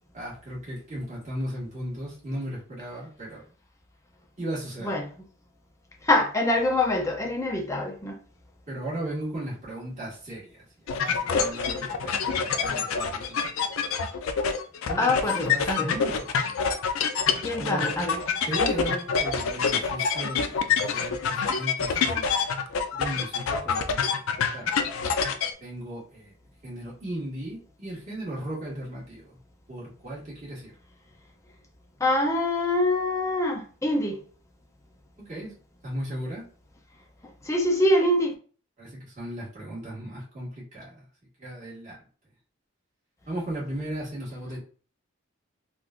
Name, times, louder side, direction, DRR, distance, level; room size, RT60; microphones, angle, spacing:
voice 1, 0.1-3.4 4.4-4.9 8.7-10.6 11.0-13.4 14.8-16.3 17.6-17.9 18.5-22.4 22.9-24.7 25.6-26.3 26.6-29.4 29.7-30.7 35.2-35.5 35.8-36.5 38.8-41.0 41.4-42.0 43.3-44.6, right 1 dB, 35° right, 1.6 m, -36 dB
voice 2, 6.0-8.2 15.0-15.9 17.4-18.2 21.4-21.5 32.0-34.2 37.5-38.3, left 1 dB, 15° left, 0.5 m, -24 dB
sound 1, 10.9-25.5, left 6 dB, 80° left, 0.4 m, -26 dB
3.7 x 2.3 x 2.4 m
head